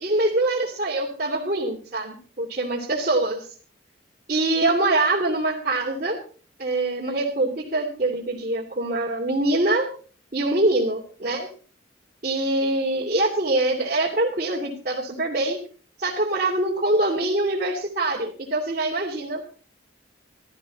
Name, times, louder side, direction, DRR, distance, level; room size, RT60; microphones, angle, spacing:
voice 1, 0.0-3.4 4.3-6.2 6.6-9.9 10.3-11.5 12.2-15.6 16.0-19.5, right 2 dB, 45° right, -5 dB, 2.9 m, -24 dB
16.0 x 13.5 x 4.2 m, 0.40 s
head